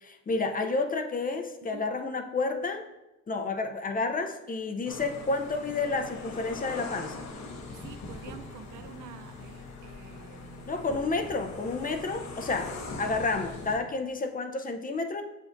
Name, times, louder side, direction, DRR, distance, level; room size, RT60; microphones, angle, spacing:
voice 1, 0.0-2.9 3.3-7.2 10.7-15.2, left 3 dB, 30° left, 6 dB, 0.6 m, -30 dB
sound 1, 4.9-13.8, left 3 dB, 65° left, 1.1 m, -41 dB
voice 2, 7.7-10.8, right 9 dB, 75° right, 9 dB, 0.6 m, -48 dB
7.3 x 5.0 x 2.6 m, 0.97 s
cardioid pair, 90°, 30 cm